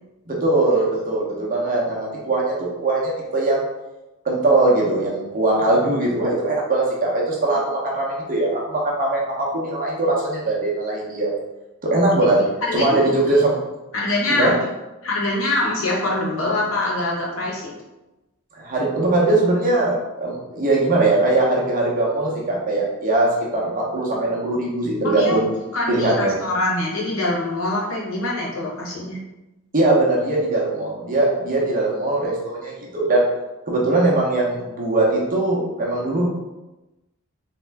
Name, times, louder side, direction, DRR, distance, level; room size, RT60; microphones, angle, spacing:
voice 1, 0.3-2.5 2.8-3.6 4.2-11.3 11.8-12.4 12.7-13.6 14.3-14.5 18.6-25.5 25.9-26.3 29.7-33.2 33.7-36.3, right 2 dB, 40° right, -4 dB, 1.0 m, -20 dB
voice 2, 12.6-13.1 13.9-14.5 15.0-17.7 25.0-25.3 25.7-29.2, left 2 dB, 70° left, -4 dB, 1.3 m, -24 dB
3.6 x 3.5 x 3.4 m, 1.0 s
head